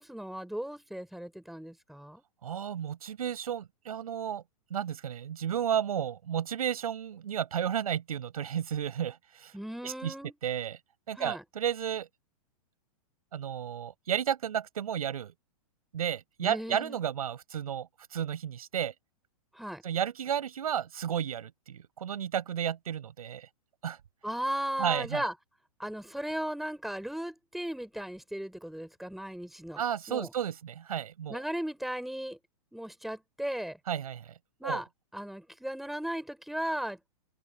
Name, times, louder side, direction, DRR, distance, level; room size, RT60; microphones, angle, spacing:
voice 1, 0.0-2.2 9.5-10.3 11.2-11.4 16.4-17.0 19.5-19.8 24.2-25.3 25.8-29.8 30.1-30.3 31.3-32.4 32.7-33.8 34.6-34.9 35.1-37.0, equal, ahead, 5.5 m, -36 dB
voice 2, 2.4-4.4 4.7-9.6 9.8-10.1 10.4-10.8 11.1-12.1 13.3-15.3 15.9-18.9 19.8-23.5 23.8-24.0 24.8-25.3 29.8-31.4 33.9-34.4 34.6-34.8, right 9 dB, 75° right, 6.7 m, -32 dB
hypercardioid pair, 115°, 19 cm